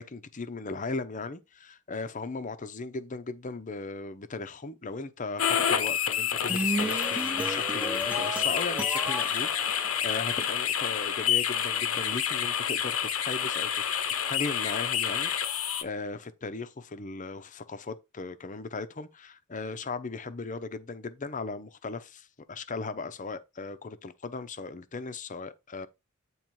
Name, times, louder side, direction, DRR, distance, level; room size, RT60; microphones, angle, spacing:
voice 1, 0.0-13.8 14.3-25.9, left 3 dB, 35° left, 0.7 m, -37 dB
sound 1, 5.4-15.8, left 9 dB, 80° left, 0.8 m, -28 dB
sound 2, 6.2-10.5, right 1 dB, 5° right, 0.8 m, -34 dB
8.9 x 3.1 x 4.7 m
head